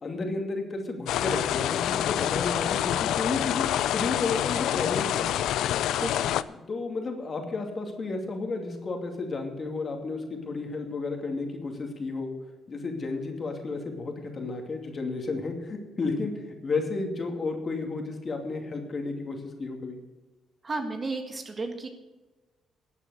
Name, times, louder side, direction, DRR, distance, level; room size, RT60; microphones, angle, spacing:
voice 1, 0.0-5.3 6.5-12.3 12.7-20.0, left 3 dB, 40° left, 3 dB, 2.5 m, -32 dB
sound 1, 1.1-6.4, left 12 dB, 80° left, 0.4 m, -27 dB
voice 2, 5.9-6.4 20.6-21.9, right 3 dB, 35° right, 5 dB, 1.8 m, -33 dB
12.5 x 8.3 x 6.4 m, 1.2 s
cardioid pair, 90°, 0 cm